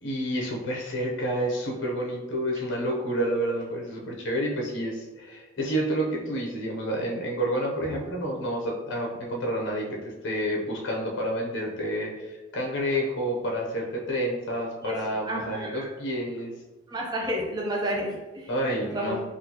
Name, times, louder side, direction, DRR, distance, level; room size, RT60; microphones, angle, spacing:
voice 1, 0.0-10.0 10.2-16.5 18.5-19.2, equal, 70° left, -1 dB, 0.7 m, -29 dB
voice 2, 15.3-15.9 16.9-18.5 18.8-19.2, right 1 dB, 20° right, -2 dB, 0.5 m, -31 dB
3.7 x 2.4 x 2.8 m, 1.2 s
head